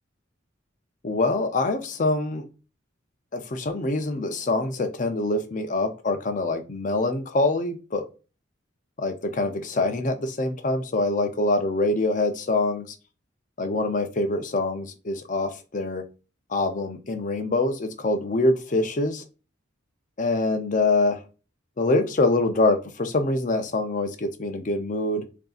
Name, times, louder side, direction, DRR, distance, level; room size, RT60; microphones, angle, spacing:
voice 1, 1.0-2.5 3.3-8.0 9.0-12.9 13.6-16.0 16.5-19.2 20.2-21.2 21.8-25.3, left 2 dB, 40° left, 8 dB, 0.5 m, -25 dB
5.2 x 2.7 x 2.4 m, 0.33 s
head